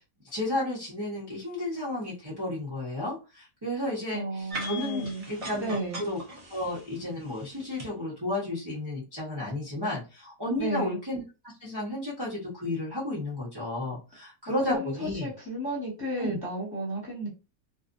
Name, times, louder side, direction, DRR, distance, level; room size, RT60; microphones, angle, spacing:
voice 1, 0.3-5.7 6.0-6.2 6.5-11.2 11.6-15.3 16.2-16.4, left 1 dB, 20° right, -8 dB, 0.8 m, -32 dB
voice 2, 4.1-5.3 5.6-6.0 10.6-11.0 14.6-17.3, right 1 dB, 15° left, -6 dB, 1.1 m, -33 dB
sound 1, 4.5-7.9, equal, 55° right, 0.4 m, -40 dB
2.6 x 2.5 x 2.5 m, 0.30 s
omnidirectional pair, 1.6 m